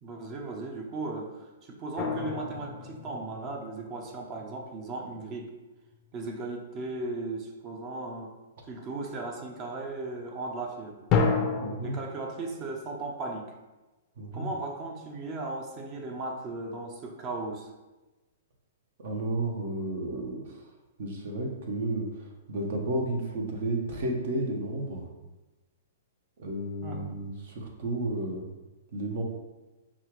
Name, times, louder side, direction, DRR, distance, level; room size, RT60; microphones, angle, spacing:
voice 1, 0.0-5.5 6.1-8.3 8.7-11.1 11.8-13.5 14.3-17.7 26.8-27.2, right 2 dB, 30° right, 2 dB, 0.6 m, -37 dB
sound 1, 2.0-4.0 11.1-11.8, left 5 dB, 30° left, 0.5 m, -28 dB
voice 2, 11.6-12.0 14.2-14.5 19.0-20.6 21.0-25.1 26.4-28.4 28.9-29.2, right 1 dB, 65° right, 1 dB, 1.0 m, -32 dB
5.4 x 2.4 x 3.2 m, 1.1 s
hypercardioid pair, 140°, 0 cm